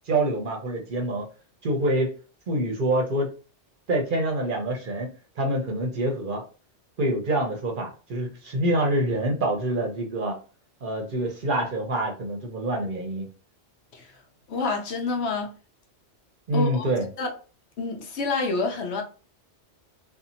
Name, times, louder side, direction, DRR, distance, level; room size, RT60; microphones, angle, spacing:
voice 1, 0.1-1.3 1.6-2.1 2.5-3.3 3.9-5.1 5.4-6.4 7.0-10.4 10.8-13.3 16.5-17.1, right 1 dB, 55° right, 0.7 m, -26 dB
voice 2, 14.5-15.5 16.5-16.9 17.2-17.3 17.8-19.0, left 3 dB, 70° left, 0.9 m, -28 dB
2.7 x 2.4 x 2.6 m
omnidirectional pair, 1.2 m